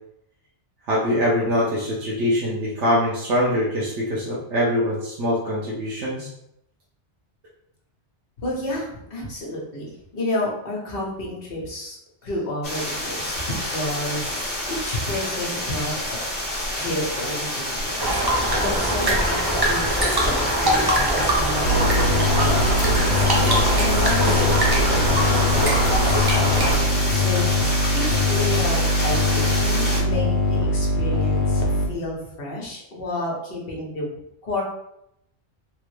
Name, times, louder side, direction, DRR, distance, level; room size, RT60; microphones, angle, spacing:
voice 1, 0.9-6.3, equal, 90° right, -6 dB, 1.1 m, -23 dB
voice 2, 8.4-9.8 10.1-12.0 12.2-13.4 13.7-16.2 16.8-27.7 27.9-34.1 34.4-34.6, left 1 dB, 60° left, -3 dB, 1.1 m, -31 dB
sound 1, 12.6-30.0, left 1 dB, 35° left, 1.4 m, -28 dB
sound 2, 18.0-26.8, right 1 dB, 30° right, 0.5 m, -22 dB
sound 3, 21.6-31.9, left 2 dB, 75° left, 0.9 m, -22 dB
3.3 x 2.1 x 3.2 m, 0.78 s
omnidirectional pair, 1.2 m